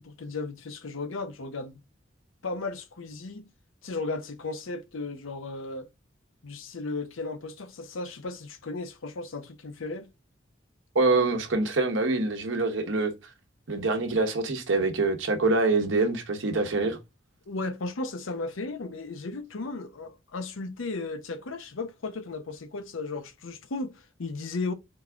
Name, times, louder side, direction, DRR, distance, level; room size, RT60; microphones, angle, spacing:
voice 1, 0.0-1.8 2.4-3.5 3.8-5.9 6.4-10.1 17.5-24.7, left 3 dB, 85° left, 0.7 m, -35 dB
voice 2, 10.9-13.1 13.7-17.0, right 3 dB, 70° right, 1.0 m, -25 dB
3.9 x 3.5 x 3.7 m
head